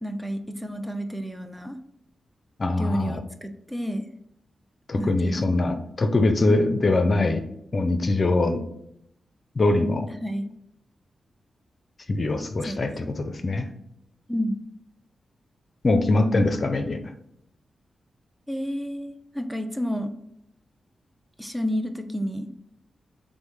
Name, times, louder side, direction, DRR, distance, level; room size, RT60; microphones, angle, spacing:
voice 1, 0.0-1.8 2.8-4.0 5.0-5.6 6.5-6.8 10.2-10.5 12.6-12.8 14.3-14.6 18.5-20.1 21.4-22.5, equal, 5° right, 7 dB, 0.5 m, -30 dB
voice 2, 2.6-3.2 4.9-7.4 7.7-8.6 9.6-10.1 12.1-13.7 15.8-17.0, left 2 dB, 50° left, 7 dB, 0.5 m, -22 dB
6.2 x 2.1 x 3.1 m, 0.78 s
supercardioid pair, 45°, 0 cm